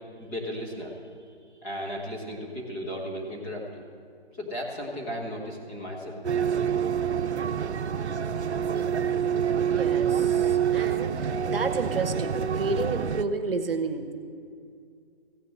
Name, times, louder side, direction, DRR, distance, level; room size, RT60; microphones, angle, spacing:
voice 1, 0.2-1.0 1.6-3.8 4.4-6.2, equal, 10° left, -5 dB, 1.0 m, -35 dB
sound 1, 6.2-13.2, right 8 dB, 85° right, 0.6 m, -26 dB
voice 2, 9.7-14.1, right 3 dB, 60° right, 8 dB, 1.1 m, -31 dB
15.0 x 6.7 x 7.7 m, 2.3 s
figure-of-eight pair, 160°, 33 cm